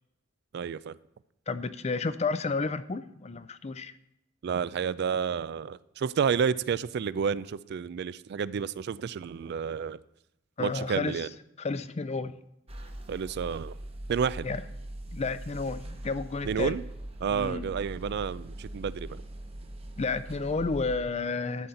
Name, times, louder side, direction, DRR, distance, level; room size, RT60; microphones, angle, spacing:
voice 1, 0.5-0.9 4.4-10.0 10.6-11.3 13.1-13.7 14.1-14.5 16.4-16.8 17.2-19.2, right 6 dB, 55° right, 0.3 m, -30 dB
voice 2, 1.5-3.9 10.6-11.2 11.6-12.3 14.4-14.6 15.1-16.8 17.3-17.7 20.0-21.7, left 4 dB, 35° left, 0.5 m, -31 dB
sound 1, 12.7-21.0, right 1 dB, 30° right, 1.0 m, -41 dB
11.5 x 4.2 x 7.8 m
head